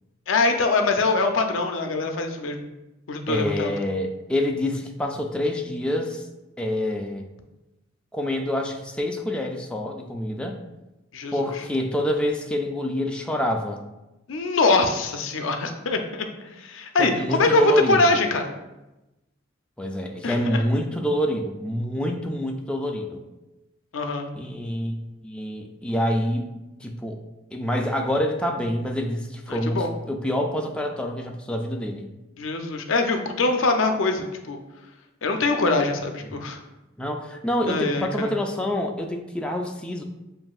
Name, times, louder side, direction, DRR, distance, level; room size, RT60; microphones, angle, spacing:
voice 1, 0.3-2.7 3.1-3.7 11.1-11.3 14.3-16.3 16.6-17.6 17.9-18.5 20.2-20.6 23.9-24.3 29.5-29.9 32.4-34.6 35.2-36.6 37.7-38.3, left 3 dB, 75° left, 5 dB, 0.5 m, -23 dB
voice 2, 3.3-6.3 6.6-7.2 8.1-10.6 11.3-13.8 17.0-18.1 19.8-23.2 24.3-24.9 25.2-26.5 26.8-27.2 27.5-32.1 37.0-40.0, left 1 dB, 5° left, 2 dB, 0.3 m, -26 dB
7.4 x 2.6 x 2.3 m, 0.99 s
head